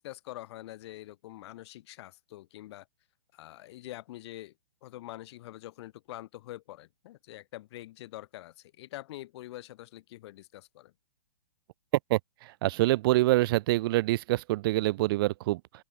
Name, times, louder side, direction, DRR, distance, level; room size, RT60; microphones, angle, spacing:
voice 1, 0.0-2.9 3.3-4.5 4.8-10.9, left 15 dB, 45° left, 5.7 m, -45 dB
voice 2, 12.6-15.6, right 18 dB, 40° right, 0.7 m, -25 dB
open air
figure-of-eight pair, 120°, 19 cm